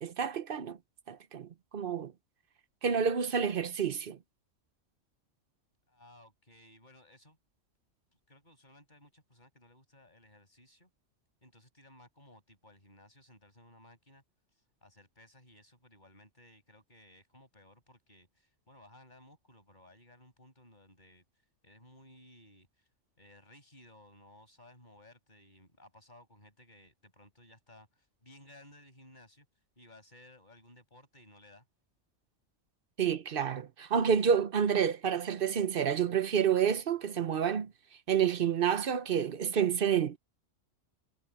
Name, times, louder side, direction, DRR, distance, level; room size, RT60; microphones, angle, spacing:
voice 1, 0.0-0.8 1.1-1.5 1.7-2.1 2.8-4.2 33.0-37.7 38.1-40.2, right 7 dB, 50° right, 1.0 m, -29 dB
voice 2, 5.9-7.4 8.3-10.9 11.4-14.2 14.8-21.2 21.6-22.9 23.2-29.5 29.8-31.7, left 1 dB, 35° left, 7.8 m, -58 dB
omnidirectional pair, 1.3 m